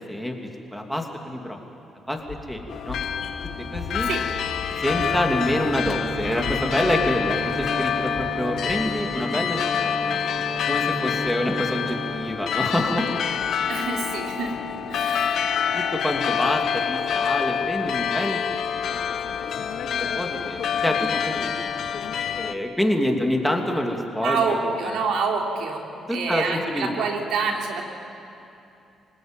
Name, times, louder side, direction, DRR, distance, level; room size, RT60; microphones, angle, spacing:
voice 1, 0.7-1.6 2.1-2.2 2.5-3.0 3.7-4.1 4.8-10.2 10.7-13.1 15.7-18.4 19.6-21.0 21.2-21.5 22.3-25.0 26.1-27.1, left 1 dB, ahead, 2 dB, 2.9 m, -27 dB
Run, 2.2-9.2, left 4 dB, 85° left, 4.2 m, -38 dB
sound 1, 2.7-22.5, left 8 dB, 65° left, 0.9 m, -27 dB
Bowed string instrument, 4.8-13.0, right 3 dB, 60° right, 2.0 m, -35 dB
voice 2, 13.6-14.5 14.9-15.5 24.2-27.8, right 4 dB, 80° right, 1 dB, 3.3 m, -27 dB
27.0 x 18.5 x 9.2 m, 2.8 s
cardioid pair, 90°, 0 cm